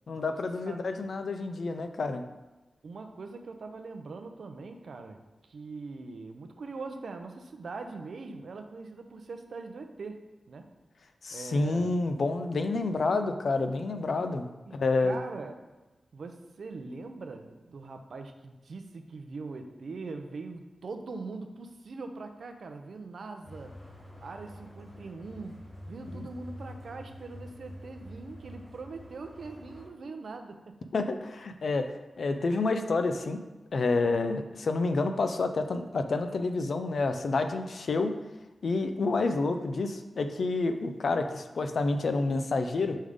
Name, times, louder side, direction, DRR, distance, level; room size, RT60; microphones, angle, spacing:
voice 1, 0.1-2.2 11.2-15.2 26.1-26.2 30.9-31.9 32.2-33.4 33.7-38.2 38.6-43.0, left 3 dB, 60° left, 7 dB, 0.4 m, -29 dB
voice 2, 0.6-1.1 2.8-5.2 5.5-10.7 11.3-12.0 14.7-15.5 16.1-23.8 24.2-25.6 25.9-30.6, right 3 dB, 65° right, 6 dB, 0.5 m, -42 dB
sound 1, 23.4-29.9, equal, 25° left, 1.8 m, -47 dB
5.4 x 3.5 x 5.0 m, 1.1 s
wide cardioid pair, 170°, 0 cm